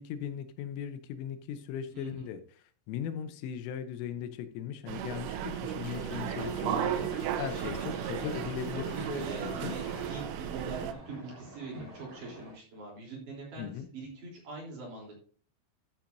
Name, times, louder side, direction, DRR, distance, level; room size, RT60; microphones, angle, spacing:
voice 1, 0.0-6.9 7.4-9.8 13.6-13.9, left 8 dB, 80° left, 9 dB, 3.3 m, -38 dB
voice 2, 1.9-2.3 7.0-7.2 7.5-7.7 8.9-15.2, right 3 dB, 45° right, -2 dB, 4.6 m, -42 dB
sound 1, 4.9-10.9, right 9 dB, 85° right, 3.4 m, -35 dB
sound 2, 5.8-10.2, left 3 dB, 45° left, 3.7 m, -48 dB
sound 3, 7.0-12.5, right 2 dB, 25° right, 5.6 m, -50 dB
13.0 x 8.4 x 2.6 m, 0.41 s
omnidirectional pair, 5.8 m